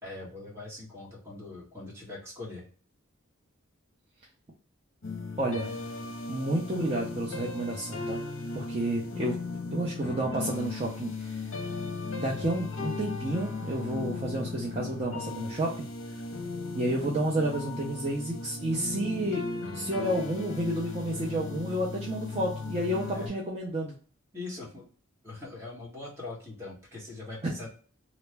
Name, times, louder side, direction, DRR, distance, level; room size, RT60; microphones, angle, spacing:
voice 1, 0.0-2.6 23.1-23.3 24.3-24.9 25.2-27.7, left 2 dB, 10° right, -5 dB, 1.1 m, -41 dB
sound 1, 5.0-23.3, left 3 dB, 65° left, 0.7 m, -37 dB
voice 2, 5.4-5.7 6.3-8.2 8.5-9.4 9.7-11.5 12.2-15.9 16.7-19.4 19.7-23.9 27.4-27.5, right 1 dB, 30° right, -4 dB, 0.5 m, -30 dB
3.1 x 2.0 x 3.2 m, 0.43 s
head